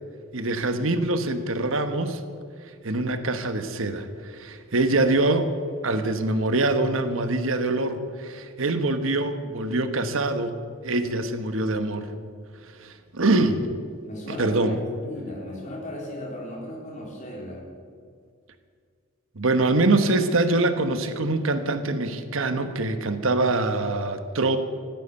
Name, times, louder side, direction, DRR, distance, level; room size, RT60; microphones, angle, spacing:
voice 1, 0.3-2.2 2.8-5.5 5.8-10.6 10.8-12.1 12.8-13.7 14.3-14.8 19.3-24.6, right 2 dB, 80° right, 9 dB, 1.2 m, -24 dB
voice 2, 14.0-17.6, left 1 dB, 35° left, -2 dB, 4.0 m, -36 dB
14.5 x 9.2 x 9.0 m, 2.1 s
head